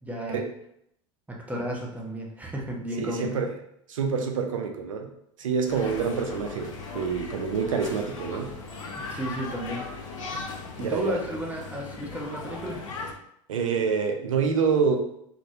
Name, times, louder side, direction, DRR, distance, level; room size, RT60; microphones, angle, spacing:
voice 1, 0.0-0.4 1.3-3.3 9.0-9.9 10.8-12.9, equal, 10° right, -1 dB, 0.6 m, -33 dB
voice 2, 3.0-3.5 3.9-5.1 5.4-8.6 10.8-11.2 13.5-15.0, right 5 dB, 80° right, 4 dB, 0.4 m, -27 dB
sound 1, 5.7-13.1, left 3 dB, 75° left, 0.5 m, -38 dB
2.2 x 2.1 x 2.7 m, 0.73 s
hypercardioid pair, 80°, 17 cm